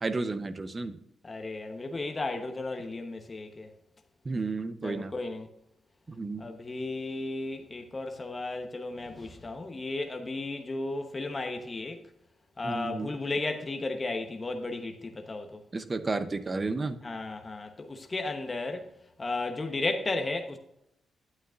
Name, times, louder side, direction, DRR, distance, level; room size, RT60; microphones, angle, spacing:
voice 1, 0.0-1.0 4.2-5.1 6.1-6.5 12.6-13.1 15.7-17.0, right 3 dB, 35° right, 0.8 m, -32 dB
voice 2, 1.2-3.7 4.8-5.5 6.4-12.0 12.6-15.6 17.0-18.8 19.2-20.6, left 2 dB, 30° left, 1.1 m, -34 dB
9.8 x 8.6 x 2.6 m
cardioid pair, 65°, 0 cm